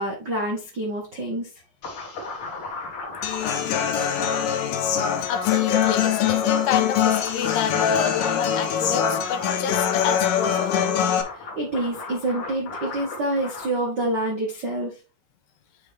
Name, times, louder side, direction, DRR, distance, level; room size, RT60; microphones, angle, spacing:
voice 1, 0.0-1.5 11.3-14.9, right 1 dB, 85° right, 0.9 m, -27 dB
sound 1, 1.8-13.7, left 3 dB, 55° left, 1.5 m, -38 dB
Human voice / Acoustic guitar, 3.2-11.2, left 8 dB, 70° left, 2.2 m, -23 dB
voice 2, 5.3-10.9, left 8 dB, 85° left, 2.8 m, -28 dB
8.8 x 3.9 x 3.5 m
omnidirectional pair, 4.7 m